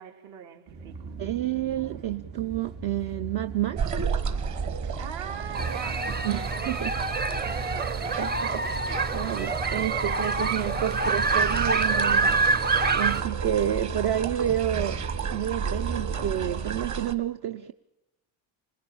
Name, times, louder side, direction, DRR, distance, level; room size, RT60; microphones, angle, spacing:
voice 1, 0.0-1.2 4.8-8.2, right 8 dB, 70° right, 2.8 m, -42 dB
sound 1, 0.7-16.8, right 5 dB, 85° right, 5.4 m, -38 dB
voice 2, 1.2-3.9 6.2-6.9 8.2-15.0 15.3-17.7, right 11 dB, 50° right, 0.8 m, -30 dB
sound 2, 3.8-17.1, right 6 dB, 35° right, 1.5 m, -33 dB
sound 3, 5.5-13.2, right 4 dB, 20° right, 0.8 m, -26 dB
26.5 x 20.0 x 7.1 m
cardioid pair, 140°, 49 cm